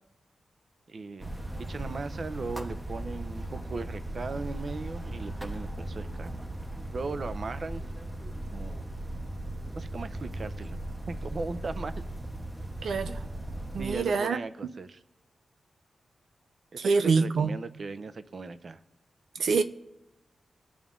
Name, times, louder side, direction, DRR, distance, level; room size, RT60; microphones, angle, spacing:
voice 1, 0.9-1.3 1.6-6.5 6.9-7.8 8.5-8.9 9.7-10.8 11.1-12.0 13.1-13.3 13.8-15.0 16.7-18.8, right 3 dB, 45° right, 0.5 m, -38 dB
sound 1, 1.2-14.0, right 1 dB, 15° right, 0.7 m, -37 dB
voice 2, 12.8-13.2 13.7-14.4 16.8-17.5 19.4-19.6, right 4 dB, 90° right, 0.6 m, -25 dB
20.5 x 7.2 x 3.7 m
wide cardioid pair, 145°, 0 cm